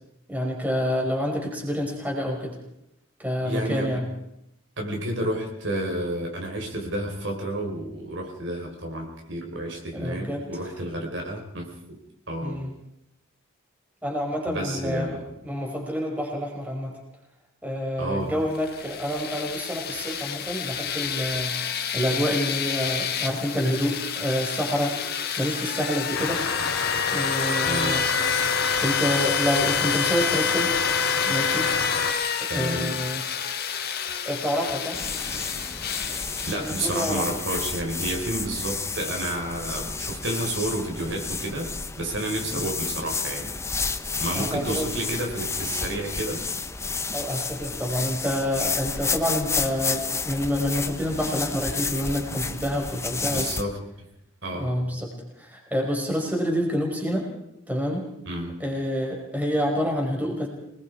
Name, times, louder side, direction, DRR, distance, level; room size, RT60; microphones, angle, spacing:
voice 1, 0.3-2.5 3.2-4.1 10.0-10.4 12.4-12.7 14.0-16.9 17.6-24.9 25.4-26.4 27.1-28.0 28.8-30.8 31.2-31.7 32.5-33.2 34.2-35.0 36.5-37.2 42.5-42.7 44.3-44.9 47.1-53.5 54.5-55.1 55.4-57.3 57.7-58.0 58.6-60.5, equal, 5° right, -1 dB, 5.1 m, -28 dB
voice 2, 3.4-4.0 4.8-12.0 12.3-12.6 14.5-15.2 18.0-18.3 27.6-28.0 32.5-32.9 36.5-41.7 42.0-43.5 44.2-46.4 53.2-54.1 54.4-54.7 58.2-58.6, right 1 dB, 60° right, 1 dB, 4.6 m, -30 dB
sound 1, 18.6-37.2, left 7 dB, 50° left, 1.6 m, -28 dB
sound 2, 26.1-32.1, left 4 dB, 80° left, 2.7 m, -29 dB
sound 3, 34.9-53.6, left 4 dB, 15° left, 0.8 m, -31 dB
26.5 x 20.5 x 4.8 m, 0.80 s
head